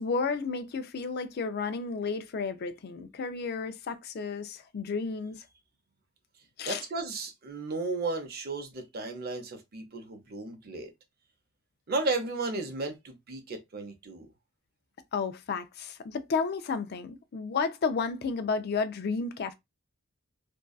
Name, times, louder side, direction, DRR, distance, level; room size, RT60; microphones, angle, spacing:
voice 1, 0.0-5.5 6.6-6.8 15.1-19.5, left 4 dB, 55° left, 0.4 m, -32 dB
voice 2, 6.7-10.9 11.9-14.3, right 3 dB, 50° right, 0.7 m, -34 dB
2.6 x 2.3 x 2.2 m
head